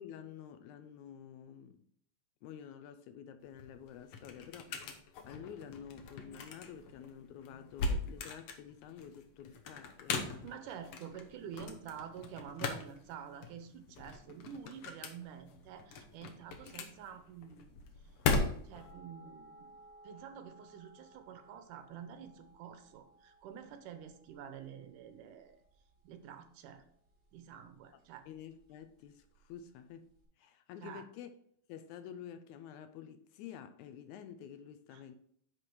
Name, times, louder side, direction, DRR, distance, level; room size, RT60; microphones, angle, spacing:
voice 1, 0.0-1.8 2.4-10.2 28.3-30.1 30.4-31.3 31.7-35.1, left 8 dB, 80° left, 1.8 m, -49 dB
sound 1, 3.4-18.9, left 4 dB, 65° left, 1.8 m, -39 dB
voice 2, 10.4-17.8 18.6-19.8 20.0-25.6 26.0-26.8 27.3-28.3 30.8-31.0 34.9-35.0, right 8 dB, 80° right, 2.4 m, -48 dB
sound 2, 18.7-30.2, right 1 dB, 30° right, 3.1 m, -61 dB
9.8 x 4.4 x 4.6 m
omnidirectional pair, 3.7 m